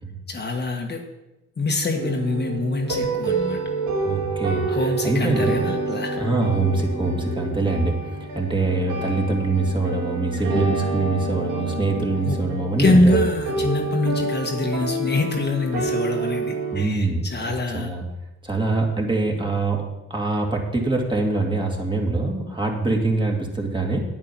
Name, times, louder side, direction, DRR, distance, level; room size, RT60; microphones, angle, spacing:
voice 1, 0.3-1.0 1.6-3.6 4.7-6.2 12.2-12.4 12.8-17.9, left 2 dB, 35° left, 2 dB, 1.4 m, -24 dB
Orphan School Creek (outro), 2.0-16.8, right 3 dB, 85° right, 2.1 m, -28 dB
voice 2, 4.0-5.7 6.2-13.2 16.7-17.2 17.7-18.0 18.4-24.0, right 3 dB, 15° right, 0 dB, 2.3 m, -24 dB
9.0 x 8.8 x 6.0 m, 0.98 s
cardioid pair, 90°, 30 cm